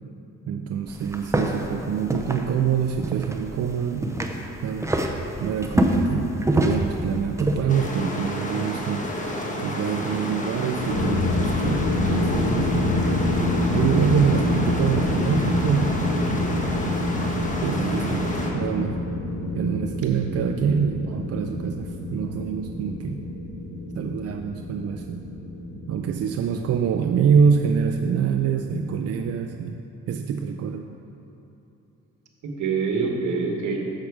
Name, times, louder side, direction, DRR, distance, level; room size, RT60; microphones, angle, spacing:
voice 1, 0.5-4.2 4.6-13.0 13.7-16.0 17.6-19.0 19.5-23.2 24.0-25.2 25.9-29.8 30.1-30.9, right 7 dB, 55° right, 4 dB, 0.4 m, -25 dB
sound 1, 0.9-7.6, right 1 dB, 10° right, 0.6 m, -26 dB
sound 2, 7.7-18.5, left 1 dB, 25° left, 1.2 m, -30 dB
sound 3, 10.6-29.5, left 1 dB, 75° left, 1.3 m, -27 dB
voice 2, 18.1-18.5 32.4-33.8, right 4 dB, 75° right, 1 dB, 1.2 m, -26 dB
7.4 x 6.5 x 4.8 m, 2.9 s
cardioid pair, 90°, 30 cm